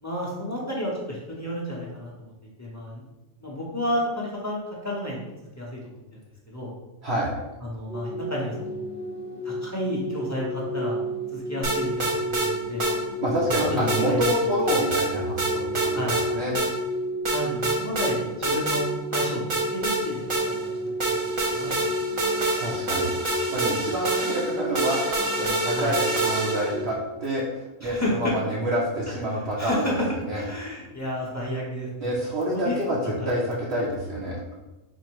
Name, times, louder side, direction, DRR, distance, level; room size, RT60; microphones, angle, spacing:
voice 1, 0.0-2.3 2.6-3.0 3.4-5.2 5.6-5.8 6.1-6.2 6.5-6.7 7.6-8.8 9.4-11.0 11.3-12.9 13.4-14.2 15.9-16.2 17.3-22.0 25.8-26.0 27.8-28.3 29.1-30.1 30.3-32.1 32.4-32.7 33.0-33.4, left 1 dB, 20° left, -5 dB, 0.5 m, -31 dB
voice 2, 7.0-7.4 13.2-16.0 16.3-16.6 22.6-23.1 23.5-29.8 30.3-30.4 32.0-34.4, equal, 60° right, -4 dB, 0.9 m, -27 dB
sound 1, 7.9-27.0, equal, 60° left, 1.0 m, -32 dB
sound 2, 11.6-12.5 12.8-12.9 13.5-14.4 14.7-15.1 15.4-16.2 16.5-16.7 17.2-18.1 18.4-18.8 19.1-20.7 21.0-26.8, right 2 dB, 35° right, 0.5 m, -26 dB
4.4 x 2.0 x 4.5 m, 1.1 s
omnidirectional pair, 1.3 m